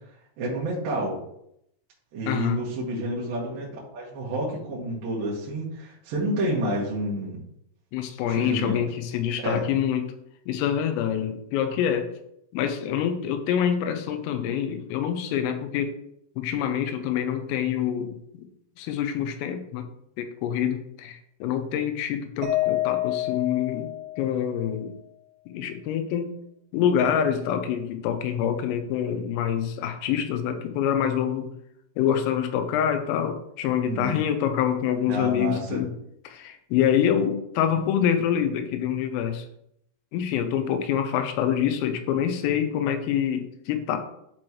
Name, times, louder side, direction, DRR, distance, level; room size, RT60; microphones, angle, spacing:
voice 1, 0.4-1.2 2.1-7.4 8.2-8.8 9.4-9.7 33.9-34.2 35.1-35.8, right 1 dB, 60° right, -7 dB, 2.8 m, -29 dB
voice 2, 2.3-2.6 7.9-10.1 10.5-12.1 12.5-16.0 16.4-18.2 18.8-19.9 20.2-24.9 25.5-26.3 26.7-31.6 32.0-36.0 36.3-39.5 40.1-44.0, left 9 dB, 90° left, 7 dB, 3.4 m, -26 dB
Mallet percussion, 22.4-24.7, left 14 dB, 90° right, 3.5 m, -28 dB
12.5 x 4.4 x 3.1 m, 0.76 s
omnidirectional pair, 5.8 m